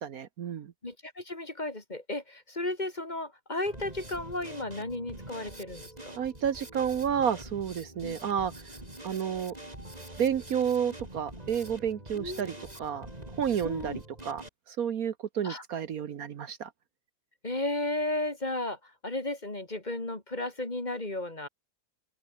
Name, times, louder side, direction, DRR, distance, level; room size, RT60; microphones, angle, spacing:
voice 1, 0.0-0.7 6.2-8.5 9.0-9.5 10.2-12.5 12.8-13.1 13.4-14.4 14.7-16.7, right 8 dB, 65° right, 1.4 m, -30 dB
voice 2, 0.8-6.2 8.0-8.2 12.1-12.6 13.6-14.0 15.4-15.6 17.4-21.5, left 2 dB, 25° left, 2.8 m, -34 dB
Drum kit, 3.7-14.5, right 1 dB, 25° right, 5.3 m, -45 dB
open air
omnidirectional pair, 1.7 m